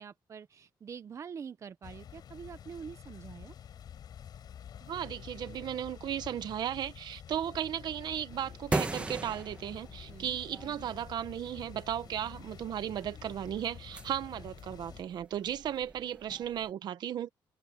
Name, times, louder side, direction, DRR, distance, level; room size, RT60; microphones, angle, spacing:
voice 1, 0.0-3.5 10.1-10.4, right 6 dB, 40° right, 1.0 m, -45 dB
sound 1, 1.8-15.0, left 9 dB, 55° left, 7.2 m, -49 dB
voice 2, 4.8-17.3, right 10 dB, 60° right, 1.2 m, -35 dB
sound 2, 8.3-16.7, right 2 dB, 15° right, 1.8 m, -41 dB
open air
cardioid pair, 135°, 8 cm